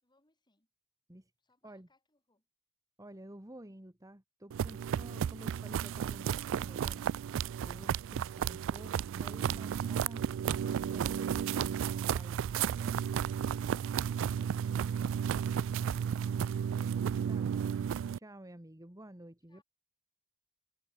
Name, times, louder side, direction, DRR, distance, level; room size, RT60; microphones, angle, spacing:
voice 1, 0.0-0.7 1.4-2.5 12.9-13.9 14.3-16.7 19.5-19.6, left 2 dB, 20° left, 5.4 m, -74 dB
voice 2, 3.0-7.0 7.3-10.3 10.9-12.4 17.3-17.7 18.2-19.6, right 1 dB, 15° right, 1.8 m, -51 dB
sound 1, 4.5-18.2, right 8 dB, 60° right, 0.3 m, -33 dB
head